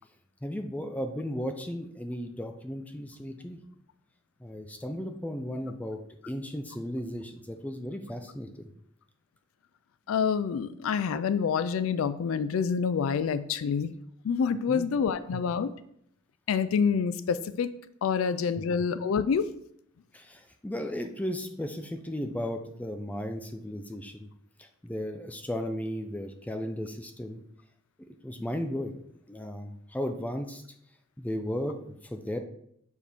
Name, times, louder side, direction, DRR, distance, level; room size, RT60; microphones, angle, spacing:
voice 1, 0.4-3.6 4.4-6.0 6.3-8.7 14.7-14.8 15.3-15.4 18.6-18.7 20.1-24.3 24.6-27.4 28.2-28.9 29.3-30.6 31.2-32.4, equal, 5° left, 5 dB, 0.4 m, -35 dB
voice 2, 10.1-13.9 14.2-15.7 16.5-17.7 18.0-19.5, left 6 dB, 85° left, 13 dB, 0.4 m, -27 dB
7.2 x 4.5 x 3.4 m, 0.71 s
head